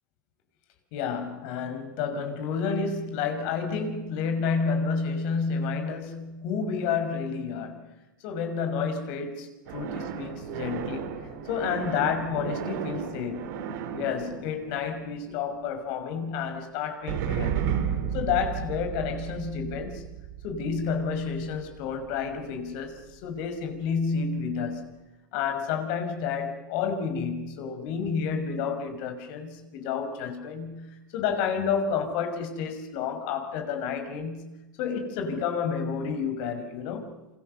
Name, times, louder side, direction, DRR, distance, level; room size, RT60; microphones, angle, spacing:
voice 1, 0.9-7.9 8.2-11.1 11.5-13.5 13.9-17.6 18.1-20.1 20.4-25.0 25.3-34.5 34.8-37.2, left 6 dB, 60° left, 5.8 m, -30 dB
sound 1, 9.7-15.6 17.1-22.4, right 8 dB, 65° right, 4.2 m, -34 dB
28.0 x 28.0 x 7.0 m
hypercardioid pair, 105°, 10 cm